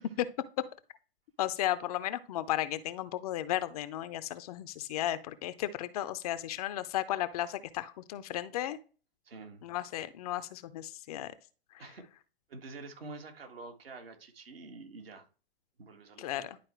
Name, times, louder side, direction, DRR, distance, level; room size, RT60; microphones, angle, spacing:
voice 1, 1.4-8.8 9.6-11.3 16.2-16.6, left 13 dB, 40° left, 0.6 m, -34 dB
voice 2, 9.3-9.6 11.8-12.0 12.5-15.3 15.8-16.5, right 3 dB, 70° right, 1.8 m, -47 dB
11.0 x 4.4 x 3.1 m
figure-of-eight pair, 110°, 30 cm